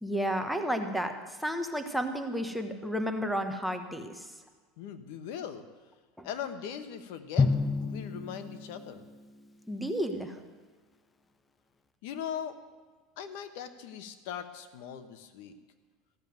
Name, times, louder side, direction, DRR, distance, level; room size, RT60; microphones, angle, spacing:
voice 1, 0.0-4.3 6.2-6.3 9.7-10.4, equal, ahead, 6 dB, 1.2 m, -32 dB
voice 2, 4.8-5.6 6.2-7.5 7.8-9.1 12.0-12.6 13.2-15.5, left 8 dB, 70° left, 10 dB, 1.2 m, -40 dB
Drum, 7.4-9.6, left 4 dB, 15° left, 0.6 m, -30 dB
15.0 x 7.3 x 9.4 m, 1.4 s
supercardioid pair, 140°, 0 cm